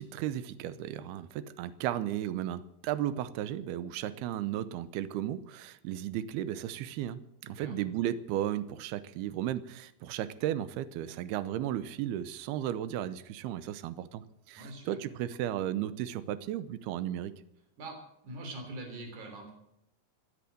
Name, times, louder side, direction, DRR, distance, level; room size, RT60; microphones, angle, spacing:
voice 1, 0.0-17.3, right 11 dB, 85° right, 14 dB, 2.8 m, -35 dB
voice 2, 7.4-7.8 14.6-15.0 17.8-18.0 18.2-19.5, right 2 dB, 50° right, 4 dB, 4.8 m, -43 dB
16.0 x 10.5 x 7.7 m, 0.80 s
omnidirectional pair, 4.5 m